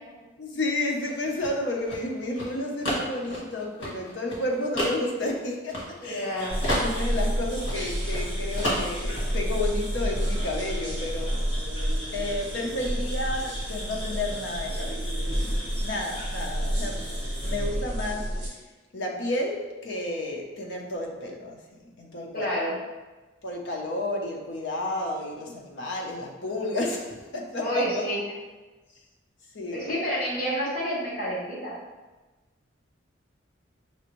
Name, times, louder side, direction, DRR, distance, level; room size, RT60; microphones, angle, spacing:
voice 1, 0.4-6.5 6.8-11.5 12.1-15.1 15.8-17.0 17.4-18.3 18.9-22.5 23.4-28.0 29.5-29.9, left 2 dB, 70° left, 0 dB, 0.7 m, -31 dB
sound 1, 1.0-6.3 6.6-8.3 8.6-9.3, equal, 85° left, 1.3 m, -31 dB
voice 2, 6.0-6.6 22.3-22.7 27.6-28.2 29.7-31.7, equal, 45° left, -6 dB, 1.3 m, -29 dB
sound 2, 6.4-17.7, equal, 25° left, 0.8 m, -41 dB
sound 3, 6.5-18.5, equal, 40° right, 1.0 m, -30 dB
5.5 x 2.5 x 3.0 m, 1.2 s
head